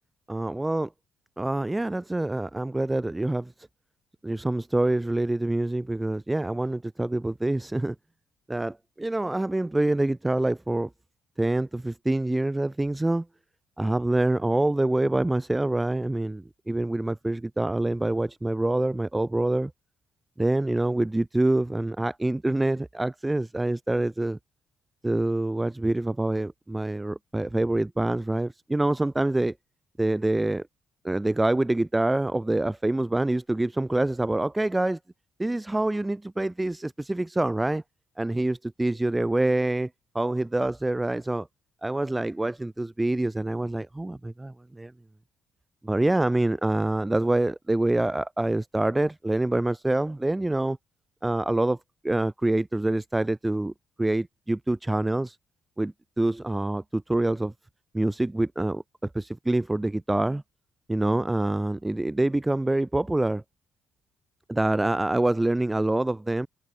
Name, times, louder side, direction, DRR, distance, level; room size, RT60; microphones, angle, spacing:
voice 1, 0.3-0.9 1.4-3.5 4.2-8.0 8.5-10.9 11.4-13.3 13.8-19.7 20.4-24.4 25.0-29.5 30.0-30.7 31.0-35.0 35.4-37.8 38.2-39.9 40.1-41.5 41.8-44.9 45.8-50.8 51.2-51.8 52.0-53.7 54.0-55.4 55.8-57.5 57.9-60.4 60.9-63.4 64.5-66.5, right 2 dB, 10° right, 2.1 m, -26 dB
cardioid pair, 90°, 0 cm